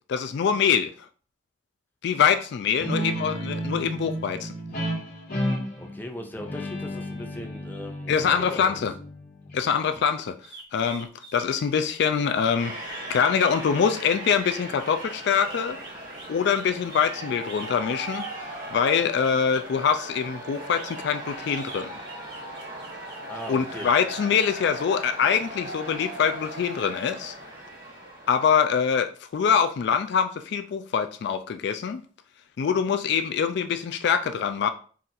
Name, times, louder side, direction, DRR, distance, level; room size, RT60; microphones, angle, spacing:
voice 1, 0.1-0.9 2.0-4.5 8.1-8.9 9.5-10.3 10.7-15.8 16.3-18.3 18.7-21.9 23.5-27.3 28.3-32.0 32.6-34.7, left 7 dB, 65° left, 0.3 m, -24 dB
Guitar, 2.8-10.0, equal, 50° left, 1.6 m, -32 dB
voice 2, 5.8-8.9 23.3-23.9, left 1 dB, 10° left, 0.5 m, -38 dB
sound 1, 10.4-19.7 20.5-24.0, right 3 dB, 70° right, 1.9 m, -47 dB
sound 2, 12.6-28.8, right 1 dB, 50° right, 2.2 m, -38 dB
4.2 x 2.5 x 3.8 m
head